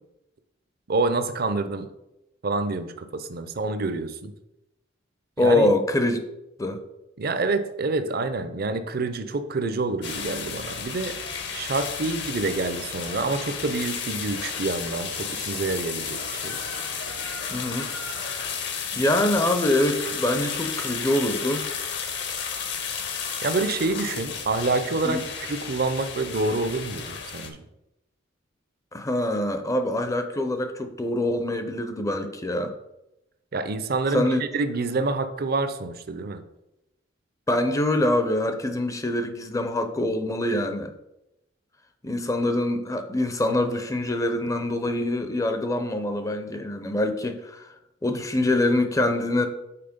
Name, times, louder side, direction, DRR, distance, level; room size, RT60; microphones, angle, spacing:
voice 1, 0.9-1.9 2.4-4.3 5.4-5.7 7.2-11.2 11.5-16.6 23.4-27.6 33.5-36.4, right 3 dB, 50° right, 0.5 m, -27 dB
voice 2, 5.4-6.2 6.6-6.8 17.5-17.9 18.3-18.5 18.9-21.7 25.0-25.2 28.9-32.7 34.1-34.4 37.5-40.9 42.0-47.7 48.0-49.5, left 1 dB, 15° left, 0.5 m, -24 dB
sound 1, 10.0-27.5, left 6 dB, 60° left, 0.9 m, -32 dB
5.8 x 4.2 x 5.1 m
head